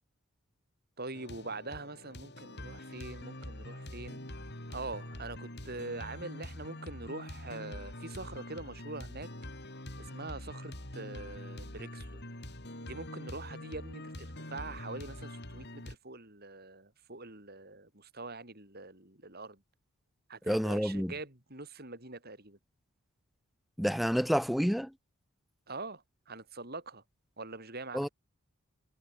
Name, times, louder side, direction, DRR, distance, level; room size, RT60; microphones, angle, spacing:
voice 1, 1.0-4.2 4.7-9.3 10.0-12.2 12.8-19.6 20.3-22.6 25.7-27.0 27.4-28.1, right 3 dB, 45° right, 5.3 m, -44 dB
sound 1, 1.1-16.0, left 1 dB, 50° left, 6.4 m, -44 dB
voice 2, 20.5-21.1 23.8-24.9 27.9-28.1, equal, ahead, 1.6 m, -29 dB
head